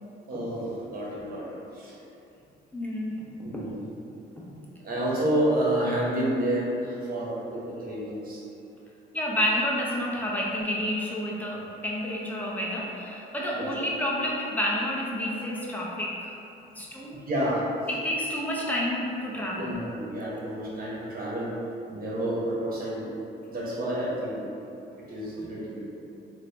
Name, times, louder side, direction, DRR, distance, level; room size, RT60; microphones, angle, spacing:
voice 1, 0.3-1.5 1.7-1.9 3.4-3.8 4.8-8.4 13.5-13.7 17.3-17.6 19.6-21.5 21.9-23.1 23.5-24.4 25.1-25.8, right 1 dB, 45° right, -5 dB, 1.0 m, -29 dB
voice 2, 2.7-3.7 4.4-4.5 9.1-16.3 16.6-17.2 17.9-19.8, equal, 10° left, -4 dB, 0.7 m, -30 dB
3.2 x 2.1 x 3.9 m, 2.8 s
cardioid pair, 90°, 20 cm